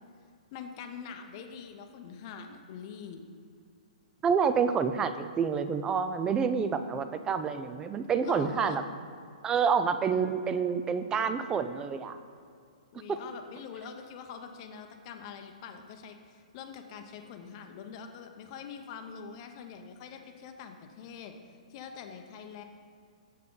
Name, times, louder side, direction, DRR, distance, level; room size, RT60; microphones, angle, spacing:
voice 1, 0.5-3.2 8.2-8.8 12.9-21.3 21.7-22.6, left 7 dB, 40° left, 5 dB, 0.7 m, -44 dB
voice 2, 4.2-8.8 9.4-12.2 13.1-13.2, right 6 dB, 15° right, 10 dB, 0.4 m, -28 dB
7.4 x 5.8 x 3.8 m, 2.3 s
hypercardioid pair, 130°, 4 cm